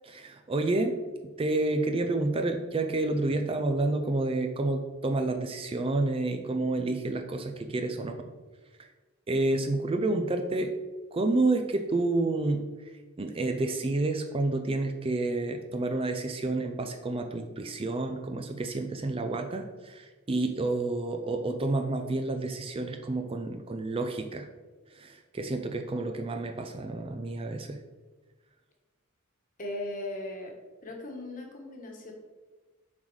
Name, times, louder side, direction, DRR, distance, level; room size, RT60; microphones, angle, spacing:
voice 1, 0.1-1.0 1.4-8.1 8.8-8.9 9.3-10.7 11.1-12.9 13.2-24.5 24.9-27.8, right 2 dB, 25° right, 5 dB, 0.4 m, -29 dB
voice 2, 29.6-30.5 30.8-32.1, left 1 dB, 40° left, 1 dB, 1.3 m, -38 dB
7.3 x 4.0 x 4.8 m, 1.3 s
head